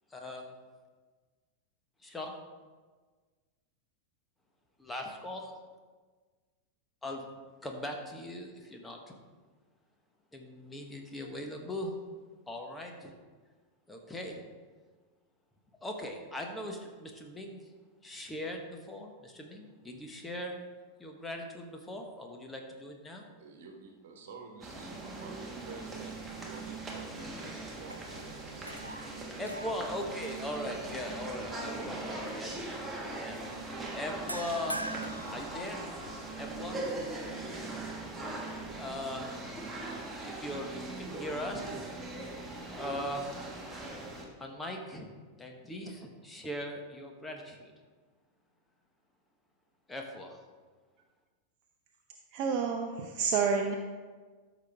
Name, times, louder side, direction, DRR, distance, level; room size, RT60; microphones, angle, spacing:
voice 1, 0.1-0.5 2.0-2.4 4.8-5.5 7.0-7.3 7.6-9.0 10.3-11.9 12.5-13.1 13.9-14.4 15.8-17.6 18.0-20.6 21.0-23.2 29.4-33.4 33.9-34.8 35.3-35.8 36.4-36.8 38.8-39.3 40.2-41.8 42.7-43.6 44.4-45.1 45.4-47.7 49.9-50.4, left 1 dB, 10° left, 2 dB, 1.3 m, -40 dB
voice 2, 23.4-29.6, right 4 dB, 55° right, 3 dB, 1.4 m, -50 dB
sound 1, 24.6-44.3, right 2 dB, 10° right, 1.6 m, -40 dB
sound 2, 26.7-27.4 27.8-31.1 31.5-31.8 34.3-36.2, right 1 dB, 85° right, 0.4 m, -44 dB
voice 3, 52.3-53.8, right 5 dB, 40° right, 3 dB, 0.7 m, -29 dB
13.5 x 6.1 x 3.5 m, 1.4 s
figure-of-eight pair, 90°, 0 cm